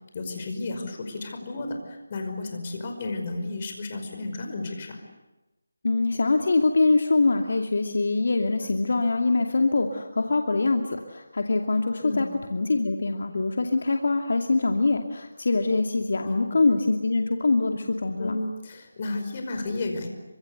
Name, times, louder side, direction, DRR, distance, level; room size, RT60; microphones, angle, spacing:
voice 1, 0.1-5.0 8.6-8.7 12.0-12.3 16.2-16.6 18.2-20.1, left 2 dB, 35° left, 5 dB, 5.4 m, -32 dB
voice 2, 5.8-18.4, left 3 dB, 65° left, 4 dB, 2.5 m, -24 dB
28.5 x 25.0 x 8.1 m, 1.0 s
figure-of-eight pair, 165°, 0 cm